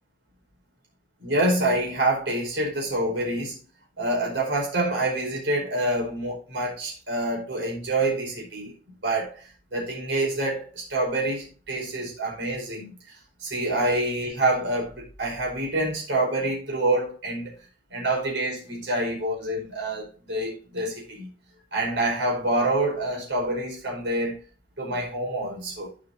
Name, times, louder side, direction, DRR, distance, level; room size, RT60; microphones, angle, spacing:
voice 1, 1.2-3.6 4.0-8.7 9.0-12.9 13.4-17.5 17.9-21.3 21.7-24.4 24.8-25.9, right 2 dB, 70° right, 4.8 m, -27 dB
15.5 x 5.7 x 2.7 m
head